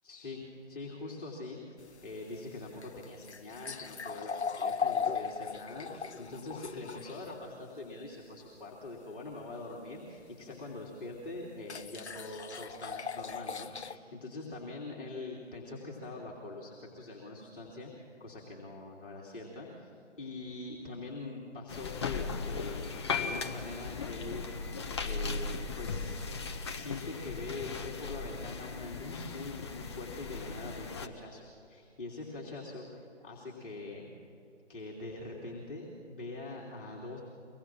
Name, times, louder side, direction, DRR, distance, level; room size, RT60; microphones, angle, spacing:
voice 1, 0.0-1.6 2.0-19.9 20.2-22.8 23.1-24.6 25.0-26.2 26.7-34.1 34.7-37.2, left 2 dB, 45° left, -3 dB, 3.1 m, -43 dB
sound 1, 1.8-7.4 10.5-10.6 11.6-14.0, left 6 dB, 65° left, 0.9 m, -37 dB
sound 2, 21.7-31.1, left 4 dB, 25° left, 0.8 m, -37 dB
24.5 x 19.5 x 6.1 m, 2.6 s
figure-of-eight pair, 150°, 36 cm